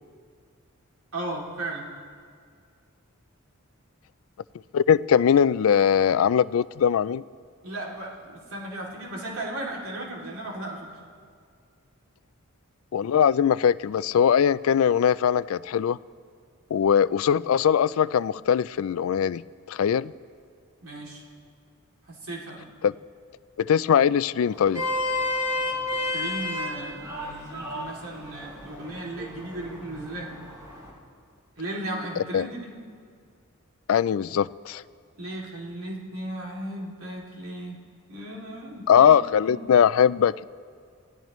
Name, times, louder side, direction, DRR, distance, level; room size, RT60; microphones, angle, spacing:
voice 1, 1.1-1.9 7.6-11.0 20.8-21.2 22.1-22.7 26.0-30.3 31.6-32.7 35.2-37.8 38.1-39.5, right 1 dB, 75° right, -3 dB, 2.9 m, -36 dB
voice 2, 4.7-7.2 12.9-16.0 16.7-19.4 19.7-20.1 22.8-22.9 23.6-24.8 32.3-32.5 33.9-34.8 38.9-40.4, left 8 dB, 70° left, 18 dB, 0.3 m, -21 dB
Vehicle horn car horn honking, 24.5-30.9, left 2 dB, 15° right, 3.1 m, -32 dB
27.0 x 16.5 x 3.1 m, 2.2 s
head